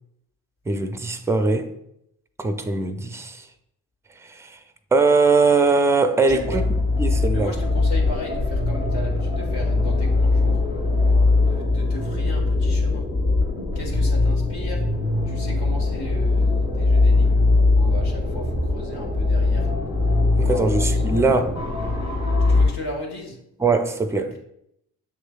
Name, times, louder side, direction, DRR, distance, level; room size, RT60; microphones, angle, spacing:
voice 1, 0.7-1.7 2.4-3.5 4.2-4.6 4.9-6.7 7.0-7.5 20.4-21.6 23.6-24.3, right 3 dB, 5° right, 0.3 m, -21 dB
sound 1, 6.3-22.7, left 3 dB, 75° left, 1.7 m, -21 dB
voice 2, 6.3-6.6 7.3-10.6 11.5-13.1 13.7-14.8 15.2-17.4 17.7-19.7 20.3-21.0 22.5-23.4, left 1 dB, 60° left, 1.5 m, -36 dB
7.3 x 3.1 x 2.3 m
hypercardioid pair, 45°, 46 cm